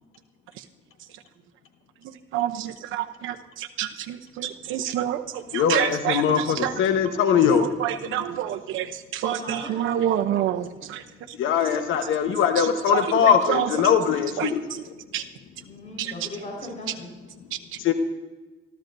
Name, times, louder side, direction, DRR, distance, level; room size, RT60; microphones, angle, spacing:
voice 1, 2.0-6.8 7.5-11.4 11.7-11.8 12.6-13.9 14.4-14.8 15.1-15.2 16.0-16.3 17.5-17.8, right 11 dB, 85° right, 5 dB, 0.8 m, -29 dB
voice 2, 5.5-7.7 11.4-14.6 17.8-17.9, left 8 dB, 85° left, 7 dB, 1.2 m, -21 dB
voice 3, 9.3-9.7 10.2-10.6 15.6-17.1, left 2 dB, 35° left, -1 dB, 4.8 m, -38 dB
26.5 x 13.5 x 2.7 m, 1.2 s
cardioid pair, 90°, 20 cm